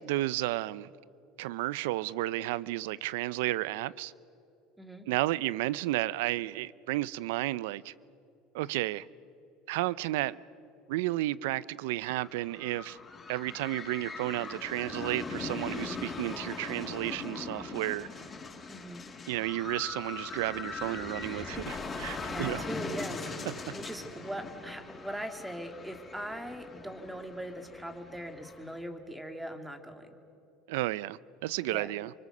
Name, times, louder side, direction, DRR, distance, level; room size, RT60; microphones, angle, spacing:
voice 1, 0.1-0.9 1.4-4.1 5.1-7.9 8.5-9.1 9.7-10.4 10.9-13.0 13.3-18.1 19.3-22.6 30.7-32.1, right 17 dB, 80° right, 0.5 m, -32 dB
voice 2, 4.8-5.1 18.7-19.0 22.2-23.3 23.7-30.2 31.7-31.9, right 1 dB, 5° right, 2.5 m, -40 dB
sound 1, 12.2-28.8, left 4 dB, 30° left, 5.3 m, -41 dB
27.5 x 24.0 x 6.7 m
supercardioid pair, 100°, 0 cm